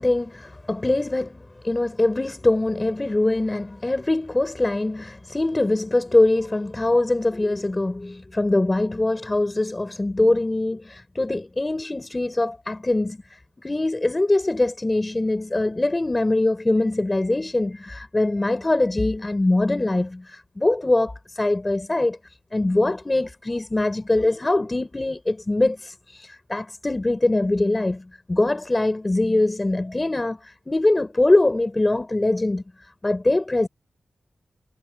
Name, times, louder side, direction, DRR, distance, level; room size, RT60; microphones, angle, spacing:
voice 1, 0.0-22.2 22.5-32.6 33.0-33.7, left 2 dB, 20° left, 4.8 m, -23 dB
wide cardioid pair, 145°, 0 cm